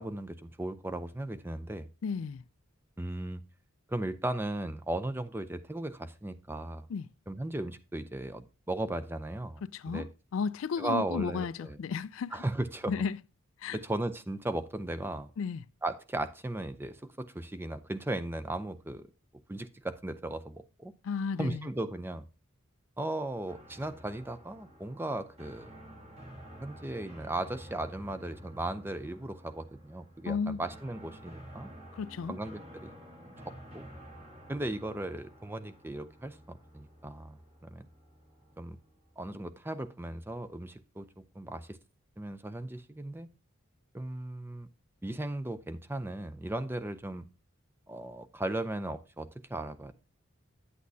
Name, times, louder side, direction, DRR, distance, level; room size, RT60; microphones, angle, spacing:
voice 1, 0.0-1.9 3.0-3.4 3.9-6.9 7.3-10.1 10.8-11.8 12.3-12.9 13.7-15.3 15.8-19.1 19.5-20.9 21.4-22.3 23.0-25.7 26.6-31.7 32.3-32.9 33.2-33.9 34.5-37.8 38.6-38.8 39.2-41.8 42.2-43.3 43.9-44.7 45.0-47.2 47.9-49.9, right 1 dB, 10° right, 0.5 m, -36 dB
voice 2, 2.0-2.4 6.9-7.1 9.6-12.4 12.9-13.2 13.6-13.8 15.4-15.6 21.0-21.7 30.3-30.6 31.9-32.4, left 6 dB, 70° left, 0.3 m, -34 dB
sound 1, 23.5-39.4, equal, 30° right, 1.7 m, -51 dB
9.5 x 8.2 x 2.7 m
head